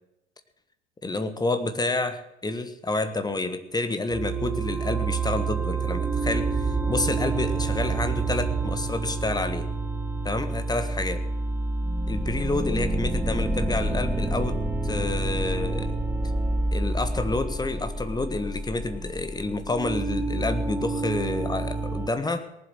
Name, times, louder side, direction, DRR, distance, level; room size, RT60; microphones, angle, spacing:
voice 1, 1.0-9.7 10.2-11.2 12.1-15.9 16.7-22.5, left 2 dB, 10° left, 10 dB, 1.4 m, -29 dB
sound 1, 4.1-22.1, right 3 dB, 5° right, 1.1 m, -28 dB
19.0 x 7.8 x 7.5 m, 0.88 s
figure-of-eight pair, 80°, 33 cm